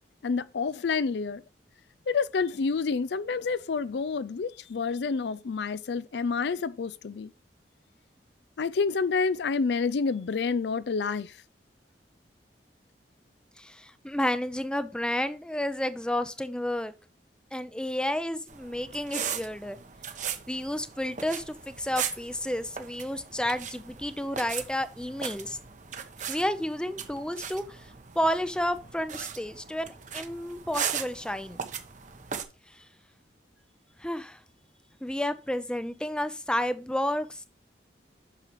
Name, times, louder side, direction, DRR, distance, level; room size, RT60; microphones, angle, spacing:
voice 1, 0.2-1.4 2.1-7.3 8.6-11.3, left 5 dB, 70° left, 0.4 m, -28 dB
voice 2, 13.6-16.9 17.5-19.8 20.5-25.6 26.3-31.6 32.7-32.8 34.0-34.4 35.0-37.4, left 1 dB, 5° left, 0.6 m, -31 dB
sound 1, 18.5-32.4, right 7 dB, 45° right, 1.0 m, -38 dB
8.6 x 6.5 x 3.1 m
head